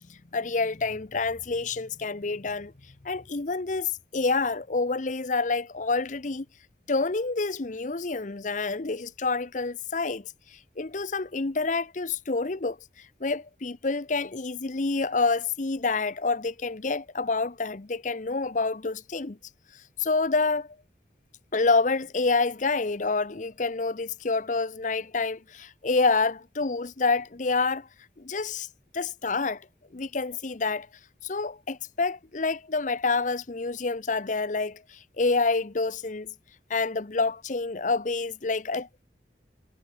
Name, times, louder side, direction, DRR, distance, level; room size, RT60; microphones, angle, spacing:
voice 1, 0.1-2.7 3.0-6.5 6.9-19.4 20.0-20.8 21.5-27.9 28.2-28.7 28.9-29.7 29.9-30.9 31.2-36.3 36.7-39.0, left 3 dB, 45° left, 0.8 m, -28 dB
head